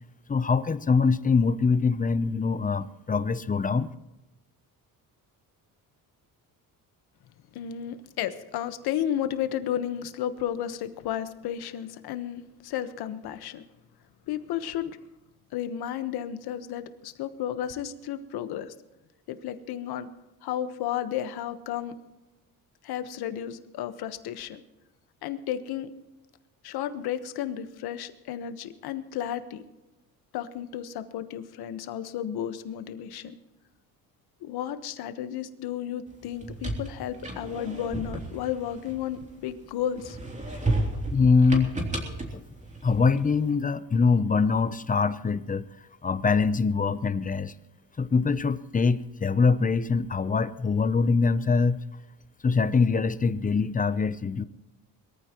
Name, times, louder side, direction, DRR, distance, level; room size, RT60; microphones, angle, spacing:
voice 1, 0.3-3.9 41.1-41.7 42.3-42.4 42.8-45.7 46.0-47.5 48.0-51.8 52.4-54.4, left 4 dB, 20° left, 14 dB, 0.6 m, -23 dB
voice 2, 7.5-13.6 14.3-14.9 15.5-18.7 19.3-20.1 20.4-22.0 22.8-24.6 25.2-25.9 26.6-29.6 30.3-33.3 34.4-40.2, left 10 dB, 80° left, 10 dB, 1.3 m, -33 dB
sound 1, 36.2-39.5 40.0-43.4, right 2 dB, 20° right, 3.2 m, -33 dB
22.5 x 14.5 x 3.0 m, 1.0 s
cardioid pair, 110°, 37 cm